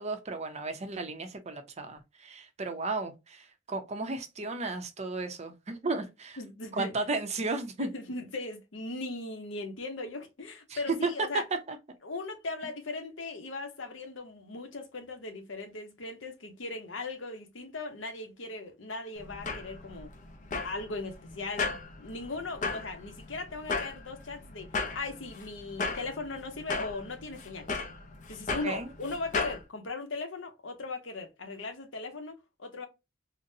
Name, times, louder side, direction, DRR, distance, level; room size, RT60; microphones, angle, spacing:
voice 1, 0.0-6.4 6.7-7.9 10.7-11.4 11.7-11.8 28.6-28.9, right 3 dB, 35° right, 0.6 m, -34 dB
voice 2, 6.4-6.9 7.8-11.4 12.0-20.1 20.6-27.7 28.3-32.9, left 3 dB, 75° left, 0.9 m, -38 dB
sound 1, 19.2-29.6, left 4 dB, 40° left, 0.5 m, -36 dB
3.9 x 2.1 x 2.7 m
head